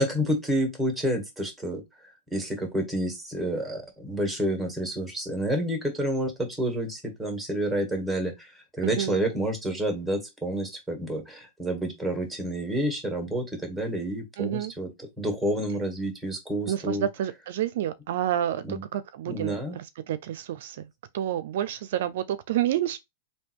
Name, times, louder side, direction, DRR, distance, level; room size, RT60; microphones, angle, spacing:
voice 1, 0.0-17.1 18.6-18.8 19.3-19.8, right 1 dB, ahead, 1.7 m, -29 dB
voice 2, 8.8-9.2 14.4-14.7 16.7-18.6 18.9-19.6 20.1-20.8 21.1-23.0, right 11 dB, 70° right, 0.5 m, -28 dB
3.5 x 2.7 x 4.5 m
hypercardioid pair, 135°, 0 cm